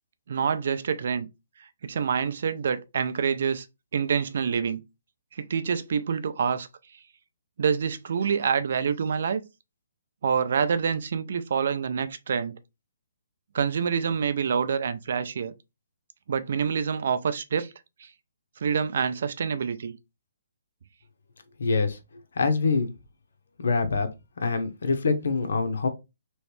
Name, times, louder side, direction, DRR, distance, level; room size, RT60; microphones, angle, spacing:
voice 1, 0.3-1.3 1.8-3.7 3.9-4.8 5.3-6.7 7.6-9.4 10.2-12.6 13.5-15.5 16.3-17.7 18.0-18.1 18.6-20.0, right 6 dB, 55° right, 0.4 m, -26 dB
voice 2, 21.6-22.0 22.4-22.9 23.6-24.1 24.4-25.9, left 4 dB, 70° left, 0.8 m, -24 dB
3.1 x 3.0 x 3.1 m
hypercardioid pair, 165°, 0 cm